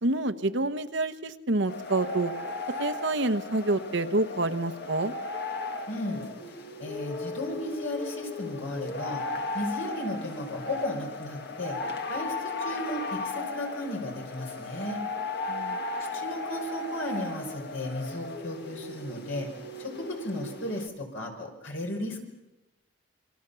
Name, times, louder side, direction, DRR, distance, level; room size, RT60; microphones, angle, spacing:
voice 1, 0.0-2.3 2.8-5.1 15.5-15.8, right 2 dB, 60° right, 10 dB, 1.2 m, -27 dB
sound 1, 1.7-20.9, left 3 dB, 50° left, 1.8 m, -36 dB
voice 2, 5.9-6.3 6.8-9.2 9.5-11.8 12.1-15.0 16.1-19.5 19.8-22.2, left 1 dB, 70° left, 2 dB, 5.5 m, -35 dB
28.0 x 24.0 x 7.0 m, 1.0 s
head